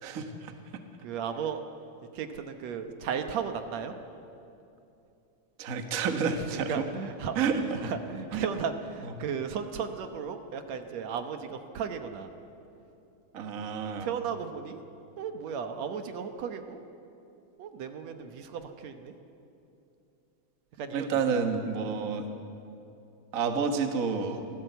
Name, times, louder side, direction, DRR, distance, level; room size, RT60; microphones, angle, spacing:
voice 1, 0.0-0.5 5.6-6.7 7.3-7.9 8.3-8.5 9.0-9.1 13.3-14.1 20.9-22.2 23.3-24.4, right 5 dB, 40° right, 6 dB, 1.2 m, -29 dB
voice 2, 1.0-1.6 2.1-3.9 6.4-12.3 14.0-14.8 15.2-16.8 17.6-19.2 20.8-21.1, right 7 dB, 70° right, 7 dB, 2.2 m, -35 dB
24.5 x 15.5 x 8.1 m, 2.8 s
omnidirectional pair, 3.4 m